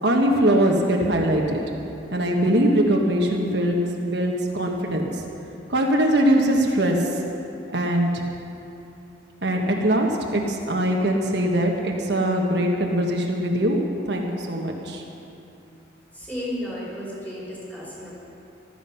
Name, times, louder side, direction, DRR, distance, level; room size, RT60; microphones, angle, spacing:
voice 1, 0.0-1.6 2.1-5.1 5.7-7.0 7.7-8.2 9.4-13.8 14.1-15.0, right 1 dB, 60° right, 0 dB, 1.3 m, -22 dB
voice 2, 16.1-18.1, equal, 10° left, -7 dB, 4.2 m, -33 dB
14.5 x 13.0 x 5.7 m, 2.8 s
head